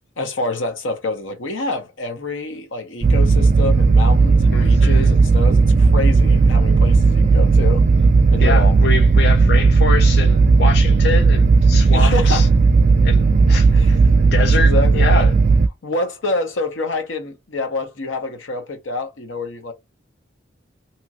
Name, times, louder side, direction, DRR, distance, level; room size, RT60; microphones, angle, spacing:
voice 1, 0.2-7.8 8.3-8.8 11.9-12.5 13.8-13.9 14.6-15.3 15.8-19.7, left 2 dB, 85° left, 0.9 m, -27 dB
low machine hum, 3.0-15.7, right 4 dB, 40° right, 0.3 m, -14 dB
voice 2, 4.5-5.1 8.4-12.5 13.0-15.3, left 5 dB, 60° left, 0.4 m, -26 dB
2.8 x 2.4 x 2.8 m
head